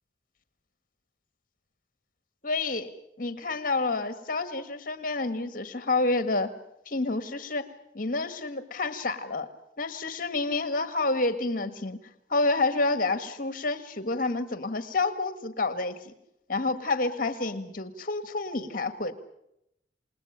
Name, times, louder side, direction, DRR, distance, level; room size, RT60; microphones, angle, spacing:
voice 1, 2.4-2.9 3.2-6.5 6.9-7.7 7.9-9.5 9.8-12.0 12.3-16.1 16.5-19.1, left 3 dB, 50° left, 11 dB, 1.8 m, -29 dB
28.0 x 20.5 x 8.9 m, 0.81 s
head